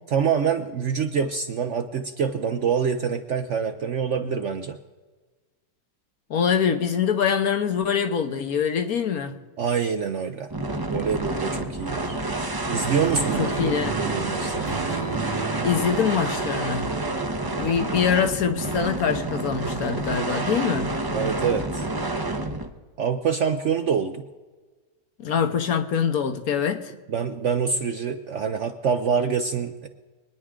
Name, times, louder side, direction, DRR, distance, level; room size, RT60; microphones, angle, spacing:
voice 1, 0.1-4.8 9.6-10.5 10.9-12.2 12.7-14.8 21.1-21.8 23.0-24.2 27.1-29.9, right 6 dB, 60° right, 7 dB, 0.8 m, -26 dB
voice 2, 6.3-9.3 13.4-13.9 15.6-16.9 17.6-20.9 25.2-26.9, left 7 dB, 65° left, 7 dB, 1.3 m, -24 dB
sound 1, 10.5-22.7, right 2 dB, 25° right, 0.5 m, -28 dB
sound 2, 12.8-17.7, right 5 dB, 80° right, 2.6 m, -35 dB
24.5 x 9.9 x 3.7 m, 1.3 s
omnidirectional pair, 1.8 m